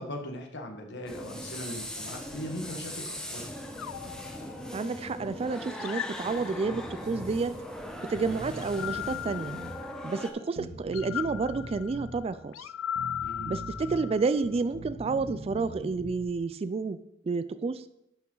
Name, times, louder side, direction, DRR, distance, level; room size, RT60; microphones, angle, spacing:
voice 1, 0.0-3.5 13.2-13.5, left 1 dB, 60° left, 3 dB, 1.5 m, -39 dB
sound 1, 1.1-10.3, equal, 5° left, 0.9 m, -40 dB
sound 2, 3.8-5.1 5.8-7.1 8.5-10.3 10.9-14.4, left 10 dB, 80° left, 0.3 m, -38 dB
voice 2, 4.7-7.6 8.0-9.6 10.0-12.7 13.5-17.8, right 4 dB, 30° right, 13 dB, 0.3 m, -30 dB
Bass guitar, 6.6-7.3 7.8-7.9 8.1-9.8 10.6-12.2 12.9-14.1 14.4-16.2, right 1 dB, 85° right, 1.9 m, -42 dB
11.0 x 6.3 x 3.8 m, 0.80 s
head